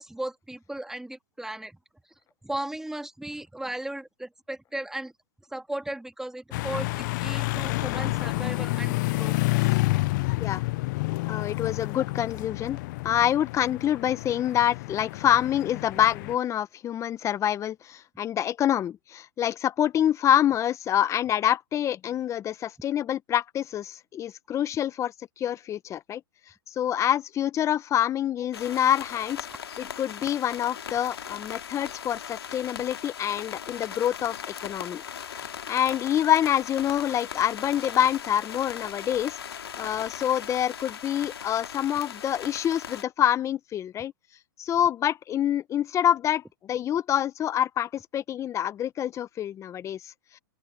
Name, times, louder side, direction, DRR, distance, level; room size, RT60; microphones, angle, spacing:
voice 1, 0.0-1.8 2.4-5.1 5.5-9.5, right 1 dB, 5° right, 2.2 m, -36 dB
sound 1, 6.5-16.3, left 21 dB, 50° left, 0.6 m, -29 dB
voice 2, 11.2-12.8 13.0-26.2 26.8-29.5 29.8-34.4 34.6-35.0 35.4-39.4 39.8-44.1 44.6-50.1, left 10 dB, 25° left, 1.1 m, -26 dB
sound 2, 28.5-43.0, left 8 dB, 90° left, 2.5 m, -39 dB
open air
hypercardioid pair, 125°, 13 cm